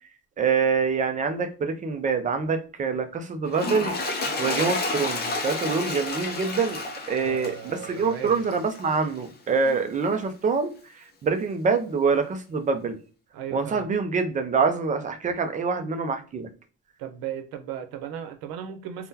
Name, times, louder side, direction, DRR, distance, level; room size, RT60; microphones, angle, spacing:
voice 1, 0.4-3.9 4.4-10.7 11.2-13.0 13.5-16.5, right 5 dB, 20° right, 0.3 m, -25 dB
Toilet flush, 3.5-9.0 9.6-9.8, left 2 dB, 25° left, 0.6 m, -31 dB
voice 2, 7.2-8.5 13.3-13.9 17.0-19.1, right 9 dB, 70° right, 0.7 m, -36 dB
3.6 x 2.1 x 2.7 m
cardioid pair, 150°, 37 cm